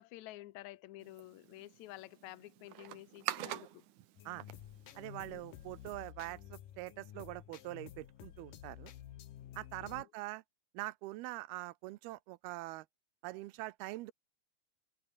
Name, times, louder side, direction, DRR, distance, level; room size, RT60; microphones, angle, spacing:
voice 1, 0.0-3.9 5.2-5.4 9.5-10.1, left 17 dB, 85° left, 1.6 m, -51 dB
sound 1, 1.0-6.1, right 13 dB, 65° right, 2.3 m, -46 dB
sound 2, 4.2-10.0, left 11 dB, 65° left, 3.1 m, -52 dB
voice 2, 5.0-8.9 9.5-10.4 10.7-12.9 13.2-14.1, right 19 dB, 90° right, 2.7 m, -44 dB
omnidirectional pair, 4.4 m